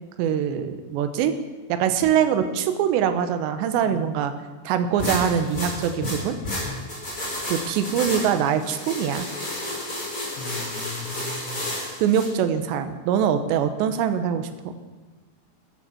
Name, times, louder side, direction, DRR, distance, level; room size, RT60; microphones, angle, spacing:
voice 1, 0.2-1.4 1.7-4.3 4.6-6.4 7.5-9.3 12.0-14.7, right 8 dB, 85° right, 8 dB, 3.1 m, -23 dB
sound 1, 5.0-12.3, left 1 dB, 20° left, 5.7 m, -31 dB
voice 2, 10.4-11.8, left 3 dB, 85° left, 4 dB, 3.6 m, -37 dB
14.0 x 10.0 x 6.1 m, 1.2 s
omnidirectional pair, 5.1 m